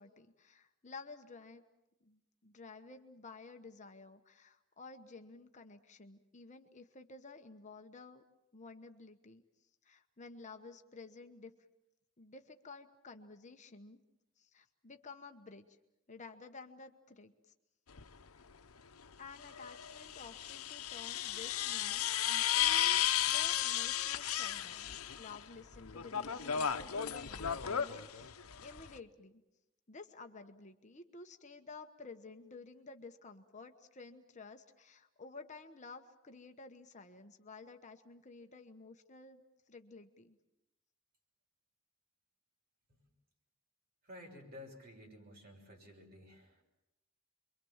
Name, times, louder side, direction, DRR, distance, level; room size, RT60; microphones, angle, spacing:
voice 1, 0.0-1.6 2.0-8.2 8.5-9.4 9.8-11.5 12.2-14.0 14.4-15.8 16.1-17.5 18.3-18.5 19.2-29.4 29.9-39.4 39.7-40.4, left 3 dB, 35° left, 6 dB, 1.1 m, -53 dB
sound 1, 17.9-18.0 19.4-25.4 25.7-29.0, left 10 dB, 85° left, 1.0 m, -34 dB
voice 2, 44.0-46.6, left 1 dB, 45° right, 1 dB, 6.3 m, -53 dB
28.0 x 23.5 x 7.3 m, 0.92 s
head